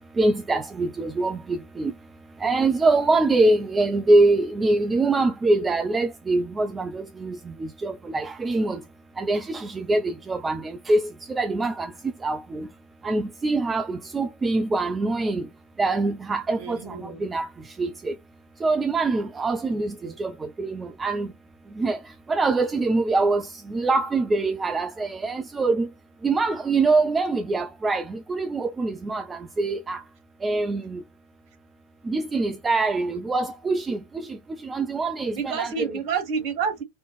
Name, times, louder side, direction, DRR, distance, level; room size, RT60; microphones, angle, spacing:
voice 1, 0.2-1.9 2.4-7.4 7.8-8.8 9.2-11.0 11.4-11.9 12.2-12.6 13.0-15.4 15.8-16.8 17.2-17.5 17.8-18.1 18.6-20.3 20.6-21.3 21.8-22.0 22.3-23.4 23.7-25.9 26.2-30.0 30.4-31.0 32.1-34.3 34.6-35.7, right 3 dB, 15° right, 0.4 m, -24 dB
voice 2, 16.6-17.2 19.7-20.2 35.3-36.8, right 6 dB, 45° right, 1.3 m, -29 dB
4.2 x 2.9 x 2.4 m
figure-of-eight pair, 90°, 0 cm